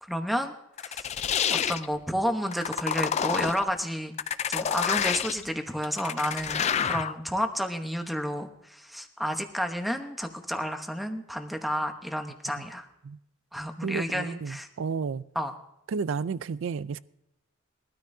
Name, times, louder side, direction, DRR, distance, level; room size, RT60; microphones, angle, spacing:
voice 1, 0.0-0.5 0.8-1.1 1.5-4.1 4.5-12.9 13.5-14.7 15.3-15.5, equal, ahead, 0.9 m, -31 dB
sound 1, 0.8-1.9 2.5-3.6 4.2-5.4 5.8-7.1, left 8 dB, 35° left, 0.3 m, -28 dB
voice 2, 13.8-15.2 15.9-17.0, right 5 dB, 65° right, 0.4 m, -32 dB
21.5 x 13.0 x 2.7 m
head